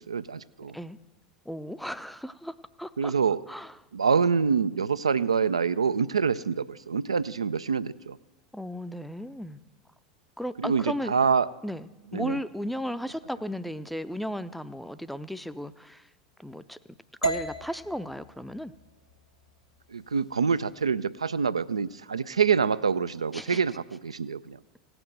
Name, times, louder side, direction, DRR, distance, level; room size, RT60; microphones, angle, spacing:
voice 1, 0.1-0.8 3.0-3.4 3.9-8.2 10.6-11.5 12.1-12.4 19.9-24.6, right 6 dB, 80° right, 17 dB, 0.4 m, -26 dB
voice 2, 1.5-3.1 3.5-3.7 8.5-9.6 10.4-11.1 11.6-16.1 16.4-16.8 17.2-18.7 23.3-23.6, equal, ahead, 13 dB, 0.5 m, -35 dB
sound 1, 17.2-21.4, right 3 dB, 90° left, 1.0 m, -36 dB
17.0 x 6.0 x 7.7 m, 1.1 s
figure-of-eight pair, 80°, 3 cm